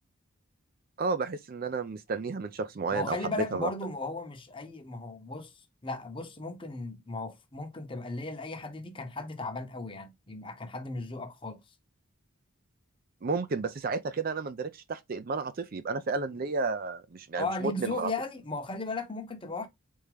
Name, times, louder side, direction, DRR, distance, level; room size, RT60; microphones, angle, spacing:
voice 1, 1.0-3.7 13.2-18.1, right 4 dB, 40° right, 0.4 m, -32 dB
voice 2, 2.9-5.5 5.8-11.6 17.4-19.7, left 3 dB, 25° left, 0.9 m, -36 dB
4.2 x 3.6 x 3.4 m
head